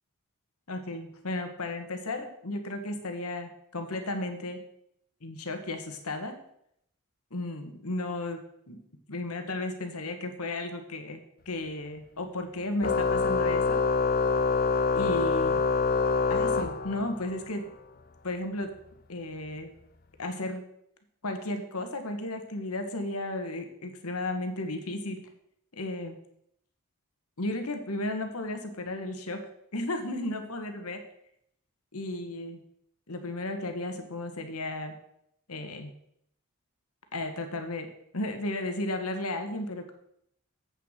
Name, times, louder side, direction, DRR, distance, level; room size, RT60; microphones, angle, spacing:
voice 1, 0.7-4.6 5.2-6.4 7.3-8.8 9.1-13.8 14.9-15.6 16.3-17.7 18.2-18.7 19.1-19.7 20.2-20.6 21.2-25.3 25.8-26.1 27.4-29.5 29.7-31.0 31.9-32.6 33.1-34.9 35.5-35.9 37.1-37.9 38.1-39.9, left 2 dB, 85° left, 7 dB, 1.6 m, -34 dB
Organ, 12.8-17.3, left 4 dB, 45° left, 0.6 m, -25 dB
8.3 x 6.8 x 6.6 m, 0.73 s
head